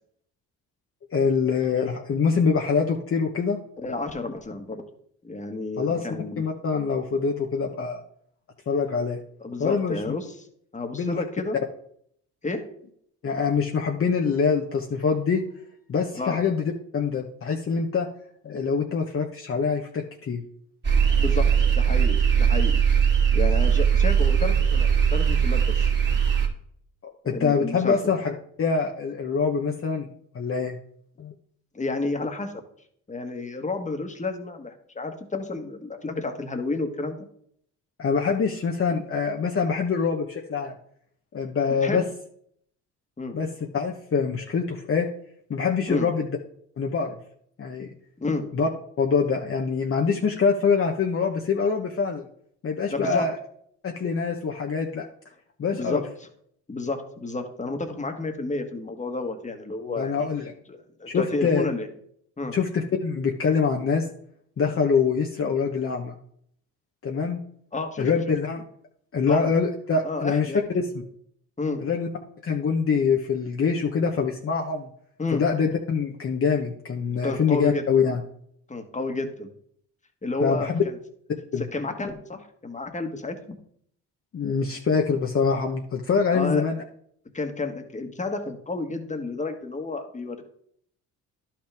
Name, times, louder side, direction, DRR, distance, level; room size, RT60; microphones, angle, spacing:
voice 1, 1.1-3.6 5.8-6.1 6.4-8.0 8.7-9.2 9.6-10.0 10.9-11.2 13.2-15.4 15.9-18.1 18.4-20.4 27.2-28.3 28.6-30.1 30.3-30.8 31.2-31.3 38.0-40.7 41.3-42.0 43.3-43.5 43.7-45.1 45.5-46.3 46.8-47.2 47.6-47.9 48.5-48.7 49.0-52.2 52.6-53.4 53.8-55.1 55.6-56.0 60.0-60.5 61.1-61.6 62.5-64.1 64.6-66.2 67.0-67.4 68.0-68.6 69.1-71.0 71.8-72.1 72.4-74.9 75.3-78.2 80.4-80.8 81.5-81.6 84.3-86.8, left 5 dB, 40° left, 1 dB, 1.1 m, -24 dB
voice 2, 3.8-4.8 5.2-6.4 9.4-10.5 10.7-11.6 12.4-12.7 16.1-16.4 21.2-22.8 23.3-25.9 27.3-28.0 31.7-32.5 33.1-37.2 41.7-42.0 43.2-43.4 45.9-46.1 48.2-48.5 52.9-53.3 55.7-56.1 56.7-60.3 60.7-61.9 62.4-62.5 67.7-68.1 69.3-69.5 70.0-70.6 71.6-71.8 75.2-75.4 77.2-77.8 78.7-79.5 80.2-80.9 81.6-83.6 86.3-86.7 87.3-90.5, left 3 dB, 20° left, 6 dB, 1.6 m, -31 dB
sound 1, 20.8-26.5, right 7 dB, 30° right, 2.4 m, -20 dB
11.0 x 5.9 x 3.5 m, 0.66 s
supercardioid pair, 65°, 33 cm